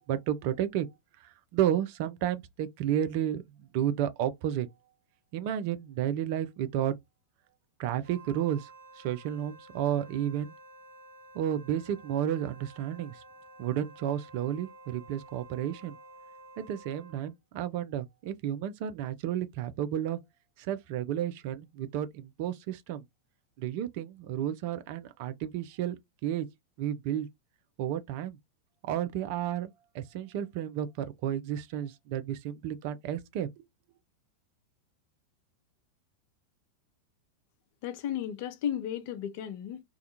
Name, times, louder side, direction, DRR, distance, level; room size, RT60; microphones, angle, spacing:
voice 1, 0.1-0.9 1.2-3.4 3.7-4.7 5.3-7.0 7.8-8.7 9.0-10.5 11.3-13.2 13.6-16.0 16.6-20.2 20.6-23.0 23.6-26.5 26.8-27.3 27.8-28.4 28.9-33.6, right 10 dB, 45° right, 0.4 m, -32 dB
Wind instrument woodwind instrument, 8.0-17.3, right 2 dB, 80° right, 0.9 m, -52 dB
voice 2, 37.8-39.8, left 10 dB, 50° left, 0.5 m, -34 dB
2.3 x 2.2 x 2.7 m
figure-of-eight pair, 90°, 0 cm